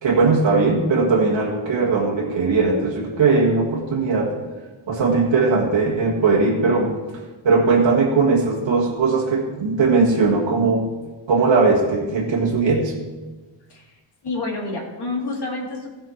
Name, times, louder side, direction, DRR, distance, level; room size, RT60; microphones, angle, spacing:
voice 1, 0.0-4.3 4.9-6.9 7.4-10.9 11.3-13.0, right 4 dB, 70° right, -4 dB, 1.8 m, -19 dB
voice 2, 14.2-15.9, left 3 dB, 60° left, -1 dB, 2.6 m, -28 dB
16.0 x 5.7 x 4.5 m, 1.2 s
wide cardioid pair, 120°, 46 cm